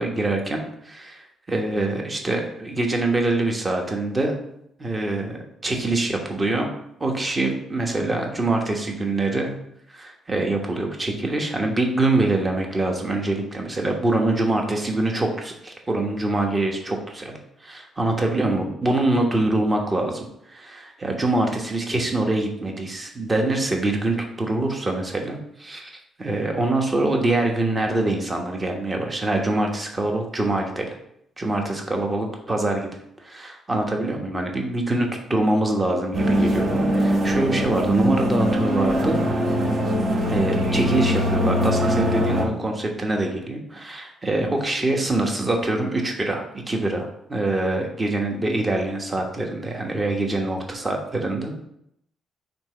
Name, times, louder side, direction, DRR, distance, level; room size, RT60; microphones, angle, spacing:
voice 1, 0.0-4.4 4.8-6.7 7.0-9.5 9.9-30.9 31.4-32.9 33.2-39.2 40.3-51.6, right 2 dB, 25° right, 2 dB, 1.2 m, -24 dB
sound 1, 36.1-42.4, equal, 50° right, 1.4 m, -22 dB
4.5 x 3.9 x 5.5 m, 0.74 s
cardioid pair, 90°, 0 cm